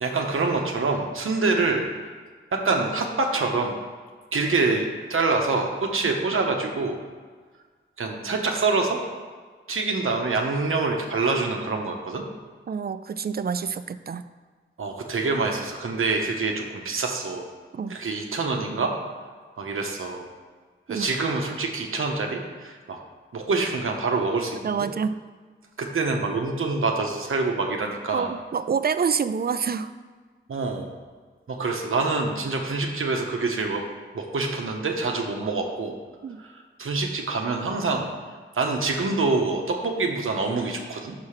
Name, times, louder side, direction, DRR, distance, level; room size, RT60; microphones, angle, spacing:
voice 1, 0.0-2.1 2.5-3.8 4.3-7.0 8.0-9.0 9.7-12.3 14.8-17.5 17.9-18.9 19.6-20.3 20.9-23.0 23.3-24.9 25.8-28.3 30.5-30.9 31.5-33.8 34.1-36.0 36.8-38.1 38.5-41.1, right 3 dB, 85° right, 2 dB, 0.9 m, -26 dB
voice 2, 12.7-14.3 17.7-18.0 20.9-21.1 24.6-25.2 28.1-29.9 36.2-36.4, right 6 dB, 50° right, 12 dB, 0.4 m, -27 dB
6.0 x 4.8 x 5.7 m, 1.5 s
cardioid pair, 45°, 21 cm